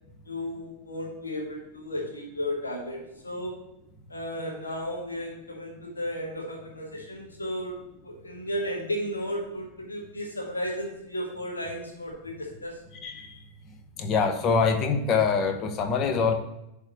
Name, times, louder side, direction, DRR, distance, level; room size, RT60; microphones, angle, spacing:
voice 1, 0.3-3.6 4.1-12.8, equal, 75° left, -2 dB, 1.8 m, -34 dB
voice 2, 14.0-16.3, left 5 dB, 35° left, 7 dB, 0.8 m, -24 dB
10.5 x 3.6 x 3.0 m, 0.89 s
figure-of-eight pair, 90°, 0 cm